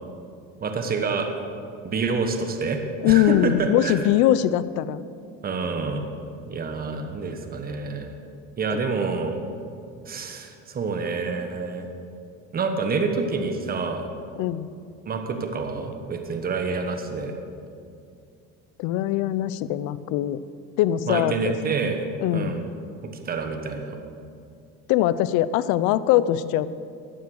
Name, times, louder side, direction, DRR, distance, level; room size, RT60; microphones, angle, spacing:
voice 1, 0.6-1.3 1.8-4.0 5.4-6.1 6.5-8.1 8.6-9.4 10.1-11.9 12.5-14.1 15.0-17.3 21.1-22.7 23.2-24.0, right 4 dB, 30° right, 5 dB, 1.4 m, -27 dB
voice 2, 3.0-5.0 8.7-8.8 14.4-14.7 18.8-20.4 20.8-21.5 22.2-22.6 24.9-26.7, left 13 dB, 75° left, 16 dB, 0.6 m, -22 dB
15.0 x 9.5 x 6.5 m, 2.5 s
cardioid pair, 115°, 30 cm